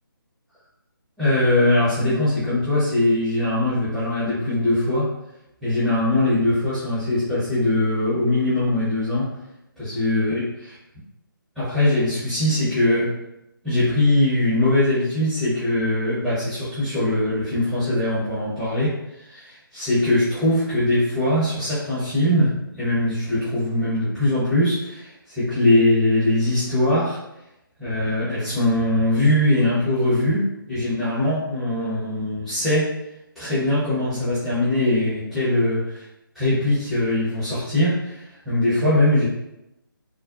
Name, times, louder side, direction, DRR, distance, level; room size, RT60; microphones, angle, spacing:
voice 1, 1.2-5.1 5.6-9.3 9.8-10.7 11.5-13.1 13.6-27.2 27.8-32.9 33.3-35.8 36.3-39.3, left 1 dB, ahead, -16 dB, 0.7 m, -21 dB
3.7 x 2.2 x 2.3 m, 0.88 s
figure-of-eight pair, 145°, 12 cm